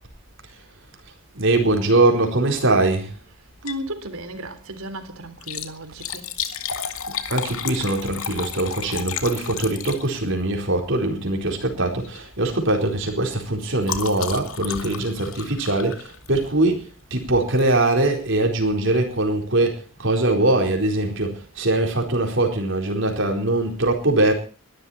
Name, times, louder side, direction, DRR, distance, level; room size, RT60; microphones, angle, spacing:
voice 1, 1.3-3.2 6.8-6.9 7.3-24.3, right 2 dB, 55° right, 4.4 m, -22 dB
Liquid, 3.5-3.9 4.3-4.4 5.3-10.4 11.4-11.7 12.0-12.3 12.6-16.6 17.6-17.8 18.4-18.5 18.7-18.8, left 7 dB, 70° left, 2.3 m, -33 dB
voice 2, 3.6-6.3, right 1 dB, 75° right, 3.6 m, -34 dB
22.5 x 13.0 x 4.3 m
head